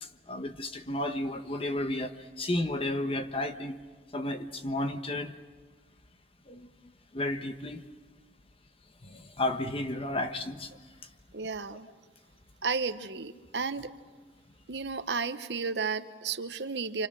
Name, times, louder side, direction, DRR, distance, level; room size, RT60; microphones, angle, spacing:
voice 1, 0.0-3.8 4.1-5.3 6.5-6.7 7.1-7.8 9.0-10.7, left 1 dB, 30° left, 1.2 m, -32 dB
voice 2, 11.3-11.9 12.6-13.9 14.7-17.1, right 4 dB, 70° right, 1.0 m, -33 dB
29.5 x 26.5 x 6.3 m
head